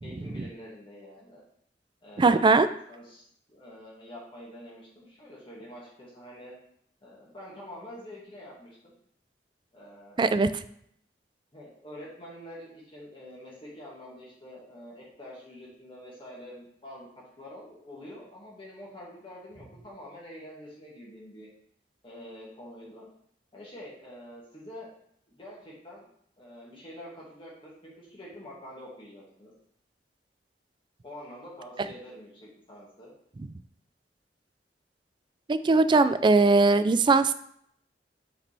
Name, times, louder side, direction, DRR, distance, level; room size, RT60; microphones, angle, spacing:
voice 1, 0.0-1.4 2.0-3.2 3.5-6.6 7.0-8.9 9.7-10.3 11.5-21.5 22.0-23.1 23.5-24.9 25.3-26.1 26.4-29.5 31.0-33.1, equal, 30° left, -5 dB, 1.9 m, -46 dB
voice 2, 2.2-2.7 10.2-10.5 35.5-37.3, right 3 dB, 25° right, 13 dB, 0.3 m, -20 dB
8.2 x 5.1 x 3.4 m, 0.69 s
head